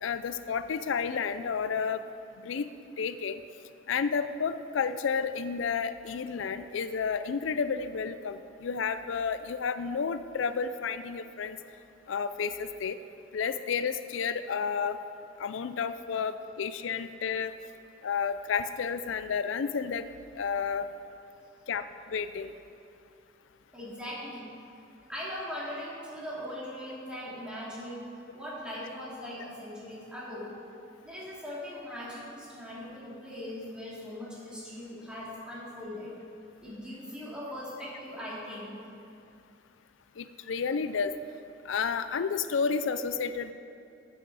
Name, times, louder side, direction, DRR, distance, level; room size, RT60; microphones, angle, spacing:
voice 1, 0.0-2.0 2.4-2.7 3.0-3.4 3.9-11.6 12.1-13.0 13.3-15.0 15.4-17.5 18.0-20.1 20.3-20.9 21.7-22.5 40.2-41.1 41.7-43.5, left 6 dB, 90° left, 12 dB, 0.4 m, -31 dB
voice 2, 23.7-24.5 25.1-30.5 31.0-36.1 36.6-38.8, left 1 dB, 5° right, -7 dB, 2.8 m, -40 dB
13.5 x 8.6 x 4.8 m, 2.6 s
head